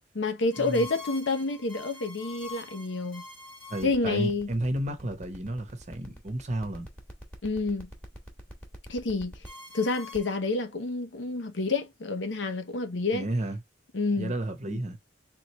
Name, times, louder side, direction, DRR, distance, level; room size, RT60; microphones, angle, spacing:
voice 1, 0.1-3.2 3.8-4.5 7.4-7.9 8.9-9.3 9.7-13.3 13.9-14.3 14.7-14.8, left 3 dB, 85° left, 0.8 m, -29 dB
sound 1, 0.5-10.4, left 2 dB, 5° left, 1.2 m, -45 dB
voice 2, 3.7-6.9 13.1-13.6 14.2-15.0, right 1 dB, 40° right, 0.9 m, -32 dB
3.7 x 3.1 x 3.0 m
head